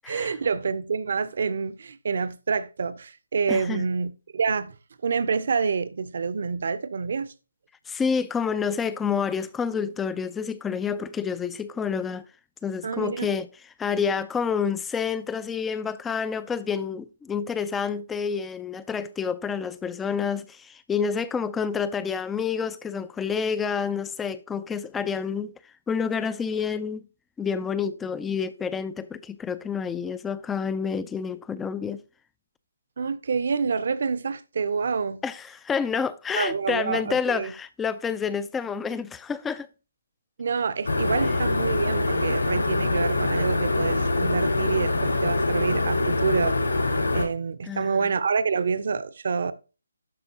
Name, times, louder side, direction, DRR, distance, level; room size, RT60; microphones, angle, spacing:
voice 1, 0.1-4.7 5.0-7.3 12.8-13.3 33.0-35.2 36.3-37.5 40.4-46.6 47.1-49.5, right 5 dB, 50° right, 0.7 m, -27 dB
voice 2, 3.5-3.9 7.9-12.3 12.6-13.5 13.8-25.5 25.9-27.0 27.4-32.0 35.2-39.7 47.7-48.0, left 6 dB, 10° left, 0.3 m, -28 dB
sound 1, 40.8-47.2, left 2 dB, 75° left, 4.8 m, -24 dB
11.5 x 4.3 x 2.9 m
figure-of-eight pair, 150°, 0 cm